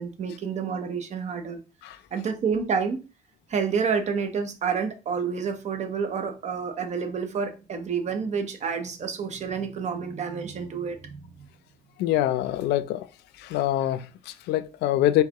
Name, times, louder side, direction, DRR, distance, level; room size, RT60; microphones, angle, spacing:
voice 1, 0.0-1.6 2.1-3.0 3.5-11.5, right 6 dB, 45° right, 0.9 m, -29 dB
voice 2, 12.0-13.1 13.4-15.2, left 13 dB, 80° left, 0.4 m, -25 dB
4.6 x 3.4 x 2.9 m
cardioid pair, 110°, 17 cm